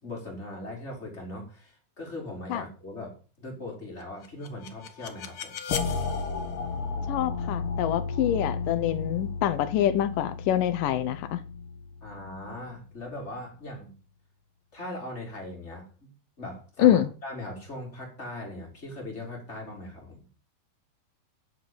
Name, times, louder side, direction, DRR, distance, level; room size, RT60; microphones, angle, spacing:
voice 1, 0.0-5.6 12.0-14.0 14.7-20.3, left 1 dB, 15° left, 5.0 m, -40 dB
sound 1, 4.2-13.2, left 5 dB, 85° left, 1.2 m, -33 dB
voice 2, 7.1-11.4 16.8-17.1, left 11 dB, 70° left, 2.2 m, -25 dB
10.0 x 8.0 x 7.8 m
omnidirectional pair, 4.6 m